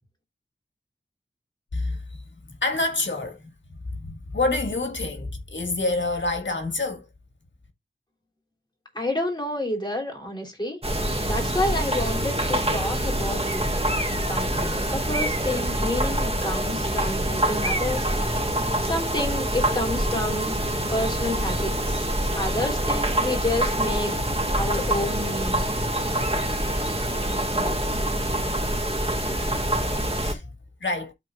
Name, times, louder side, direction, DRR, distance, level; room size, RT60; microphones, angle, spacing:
voice 1, 1.7-2.2 2.5-3.5 3.9-7.1 30.2-30.5 30.8-31.1, left 2 dB, 70° left, 1.9 m, -27 dB
voice 2, 8.9-10.8 11.2-13.4 14.3-18.1 18.8-20.6 20.9-22.1 22.4-24.1 24.6-25.6, left 1 dB, 20° left, 3.6 m, -29 dB
Forest outside the village XY, 10.8-30.3, right 1 dB, 30° right, 2.0 m, -25 dB
12.5 x 4.3 x 2.5 m
wide cardioid pair, 60°, 20 cm